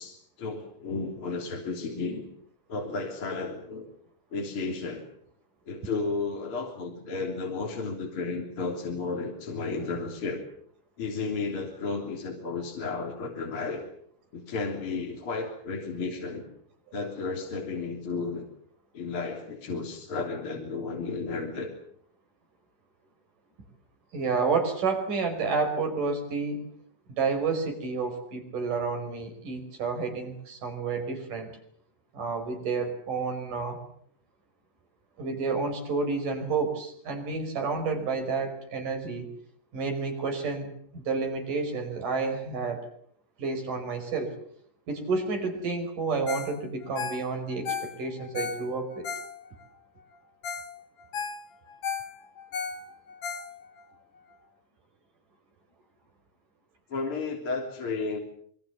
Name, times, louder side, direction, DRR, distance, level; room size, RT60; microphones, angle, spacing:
voice 1, 0.0-2.3 2.7-3.8 4.3-5.1 5.7-10.4 11.0-13.8 14.3-16.4 16.9-18.5 18.9-21.7 56.9-58.2, left 4 dB, 45° left, 1 dB, 4.1 m, -33 dB
voice 2, 24.1-26.7 27.2-31.5 32.1-33.8 35.2-39.3 39.7-42.9 43.4-44.4 44.9-49.1, right 4 dB, 90° right, 5 dB, 6.7 m, -30 dB
Ringtone, 46.3-46.6 46.8-49.7 50.1-50.2 50.4-50.7 51.0-53.9 54.3-54.4, left 6 dB, 60° left, 3.5 m, -35 dB
27.0 x 23.0 x 7.3 m, 0.65 s
omnidirectional pair, 3.6 m